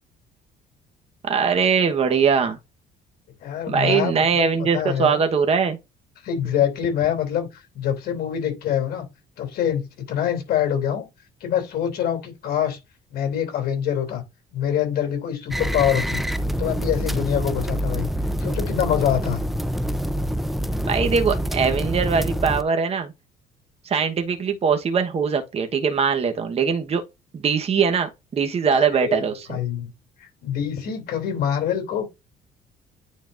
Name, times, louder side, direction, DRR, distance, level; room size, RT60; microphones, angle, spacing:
voice 1, 1.2-2.6 3.7-5.8 20.8-23.1 23.8-27.0 27.3-29.6, right 6 dB, 35° right, 1.1 m, -21 dB
voice 2, 3.4-4.4 4.7-5.2 6.2-9.0 9.4-11.0 11.4-12.8 13.1-14.2 14.5-16.2 16.6-18.1 18.4-19.4 28.7-29.9 30.4-32.1, left 9 dB, 65° left, 3.0 m, -25 dB
sound 1, 15.5-22.6, equal, ahead, 0.5 m, -26 dB
9.5 x 4.0 x 2.6 m
cardioid pair, 110°, 17 cm